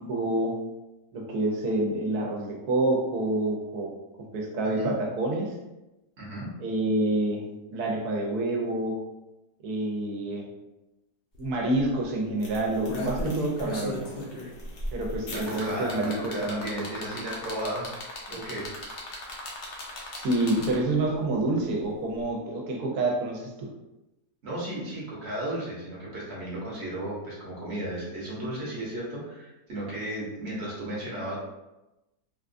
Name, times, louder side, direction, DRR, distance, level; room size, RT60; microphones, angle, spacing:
voice 1, 0.1-0.5 1.1-3.9 4.2-5.5 6.6-7.4 7.7-9.0 9.6-10.5 11.4-14.1 14.9-16.6 20.2-23.7, right 2 dB, 70° right, -1 dB, 1.1 m, -28 dB
voice 2, 6.2-6.5 15.3-17.9 18.3-18.7 24.4-31.4, right 1 dB, 45° right, -6 dB, 1.0 m, -34 dB
sound 1, 11.3-11.4 11.7-12.0 12.6-21.0 22.2-22.3, left 1 dB, 65° left, 0.5 m, -36 dB
sound 2, 12.4-17.5, left 2 dB, 90° left, 1.6 m, -49 dB
3.7 x 2.4 x 2.5 m, 0.99 s
omnidirectional pair, 1.8 m